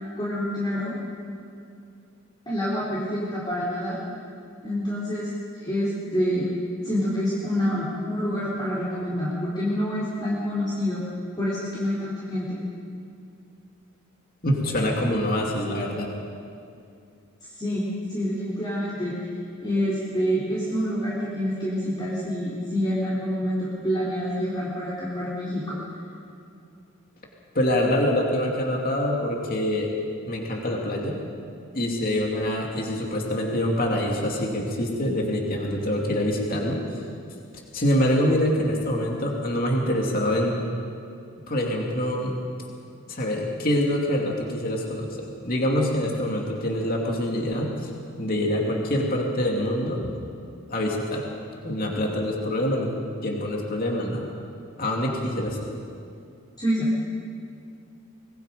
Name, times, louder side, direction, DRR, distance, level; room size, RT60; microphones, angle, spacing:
voice 1, 0.2-1.0 2.5-4.0 4.6-5.3 5.6-6.5 6.8-11.0 11.4-12.6 17.6-19.1 19.6-25.8 56.6-56.9, equal, 20° left, -9 dB, 3.8 m, -27 dB
voice 2, 14.4-16.1 27.5-29.9 30.2-31.2 31.7-36.8 37.7-40.6 41.5-42.4 43.1-47.9 48.2-50.1 50.7-51.3 51.6-52.9 53.2-54.3 54.8-55.7, left 1 dB, 40° left, -1 dB, 2.7 m, -25 dB
24.0 x 21.0 x 5.2 m, 2.5 s
head